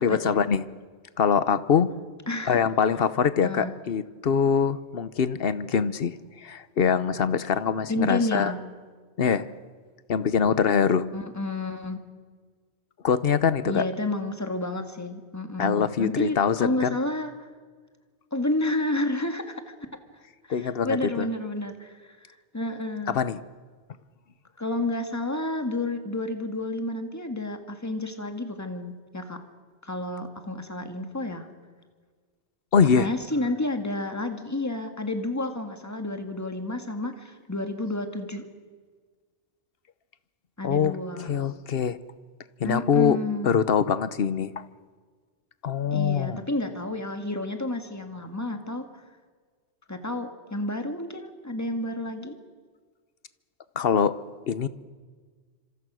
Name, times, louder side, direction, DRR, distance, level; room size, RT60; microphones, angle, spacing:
voice 1, 0.0-0.6 1.2-1.9 2.5-6.1 6.4-8.5 9.2-9.5 10.1-11.1 13.0-13.8 15.6-16.9 20.5-21.3 23.1-23.4 32.7-33.1 40.6-40.9 41.3-42.0 42.6-43.2 43.4-44.5 45.6-46.4 53.8-54.1 54.5-54.7, left 7 dB, 60° left, 15 dB, 1.1 m, -23 dB
voice 2, 2.3-2.6 3.4-3.7 7.9-8.6 11.1-12.0 13.7-17.3 18.3-19.7 20.5-23.2 24.6-29.4 29.8-31.5 33.0-38.5 40.6-41.4 42.6-43.5 45.9-48.9 49.9-52.4, left 2 dB, 15° left, 6 dB, 1.9 m, -30 dB
26.5 x 26.0 x 6.3 m, 1.5 s
omnidirectional pair, 1.2 m